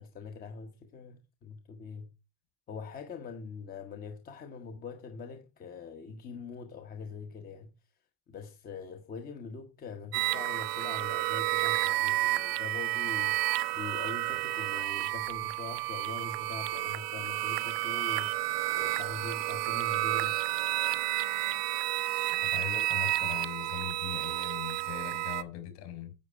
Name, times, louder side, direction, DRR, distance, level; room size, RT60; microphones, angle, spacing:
voice 1, 0.0-2.1 2.7-7.7 8.3-20.4, left 5 dB, 20° left, 1.1 m, -43 dB
sound 1, 10.1-25.4, right 18 dB, 80° right, 1.0 m, -31 dB
voice 2, 22.4-26.1, left 10 dB, 50° left, 4.0 m, -40 dB
11.0 x 7.9 x 4.6 m
cardioid pair, 170°, 47 cm